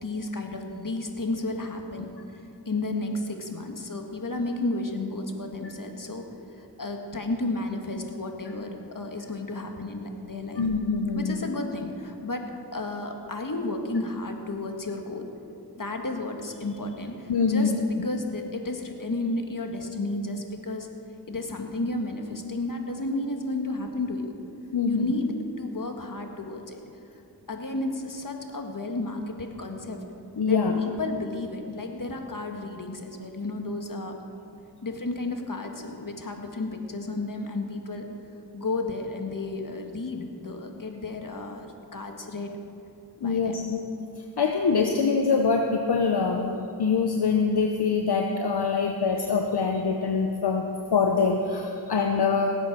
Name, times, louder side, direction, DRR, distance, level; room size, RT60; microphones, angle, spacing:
voice 1, 0.0-2.1 2.6-10.7 11.1-15.3 15.8-20.9 21.3-24.4 24.9-26.8 27.5-30.0 30.4-34.2 34.8-38.1 38.5-42.5 43.2-43.6 51.9-52.0, left 2 dB, 50° left, 3 dB, 1.8 m, -32 dB
voice 2, 10.6-11.4 17.3-17.7 24.7-25.1 30.4-30.8 43.2-43.8 44.4-52.5, left 5 dB, 70° left, 2 dB, 1.0 m, -24 dB
18.5 x 8.1 x 6.1 m, 2.6 s
cardioid pair, 40°, 41 cm